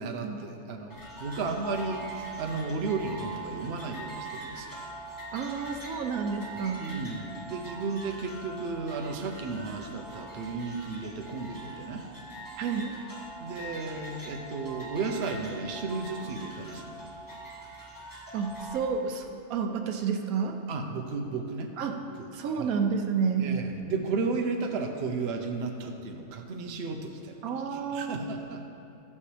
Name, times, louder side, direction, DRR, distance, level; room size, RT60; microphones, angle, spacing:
voice 1, 0.0-4.8 6.8-12.0 13.4-17.1 20.7-21.7 22.2-22.7 23.4-28.7, right 4 dB, 55° right, 3 dB, 1.0 m, -34 dB
sound 1, 0.9-18.8, right 2 dB, 15° left, 1.4 m, -42 dB
voice 2, 5.3-6.8 12.6-13.0 18.3-20.6 21.8-22.0 22.3-23.5 27.4-28.5, right 6 dB, 80° right, 5 dB, 1.1 m, -30 dB
13.5 x 8.6 x 3.3 m, 2.8 s
omnidirectional pair, 1.5 m